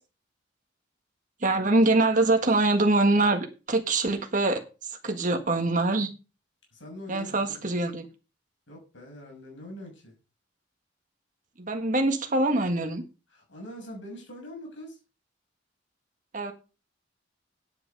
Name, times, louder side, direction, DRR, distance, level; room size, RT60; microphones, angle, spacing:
voice 1, 1.4-4.6 5.0-6.1 7.1-8.0 11.6-13.0 16.3-16.5, right 2 dB, 45° right, 1.6 m, -24 dB
voice 2, 6.7-7.7 8.7-10.1 13.3-15.0, equal, 80° left, 6.6 m, -43 dB
9.9 x 9.1 x 5.3 m
head